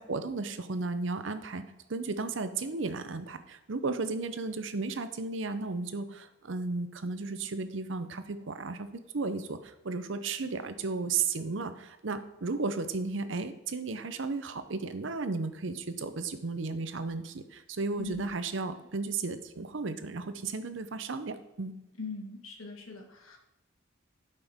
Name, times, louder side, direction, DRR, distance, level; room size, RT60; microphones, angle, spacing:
voice 1, 0.0-1.6 1.9-8.9 9.1-21.7, right 3 dB, 65° right, 10 dB, 0.7 m, -34 dB
voice 2, 22.0-23.4, left 3 dB, 85° left, 1 dB, 1.7 m, -41 dB
12.0 x 5.4 x 3.6 m, 0.94 s
head